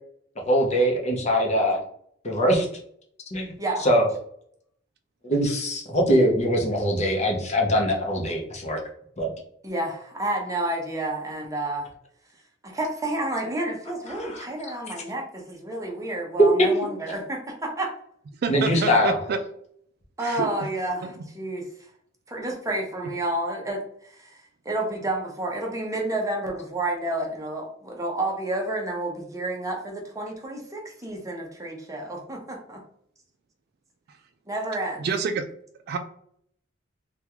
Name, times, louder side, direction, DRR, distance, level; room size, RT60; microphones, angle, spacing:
voice 1, 0.5-1.8 2.2-2.7 3.3-3.5 3.8-4.1 5.2-8.8 9.2-9.3 14.1-14.4 18.5-19.1, equal, 35° left, 0 dB, 0.8 m, -22 dB
voice 2, 9.6-11.9 12.6-17.9 20.2-21.1 21.3-21.6 22.3-24.4 24.6-32.4 34.5-35.0, right 1 dB, 15° right, 0 dB, 0.7 m, -30 dB
voice 3, 18.4-19.4 20.2-20.7 21.0-21.1 34.1-34.2 35.0-35.5 35.9-36.0, right 5 dB, 55° right, 7 dB, 0.3 m, -28 dB
3.5 x 2.3 x 2.9 m, 0.66 s
head